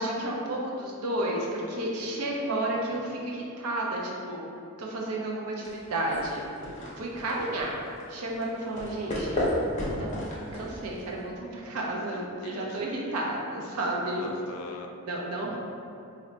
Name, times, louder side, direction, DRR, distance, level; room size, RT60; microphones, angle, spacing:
voice 1, 0.0-4.4 4.8-6.5 7.0-7.8 8.1-9.5 9.9-14.3 15.1-15.6, right 1 dB, 85° right, -2 dB, 0.6 m, -32 dB
voice 2, 1.4-1.9 6.6-7.0 12.1-13.1 14.2-14.9, left 3 dB, 85° left, 4 dB, 0.3 m, -44 dB
sound 1, 5.6-11.3, left 1 dB, 35° left, 0.6 m, -33 dB
2.6 x 2.1 x 3.9 m, 2.6 s
head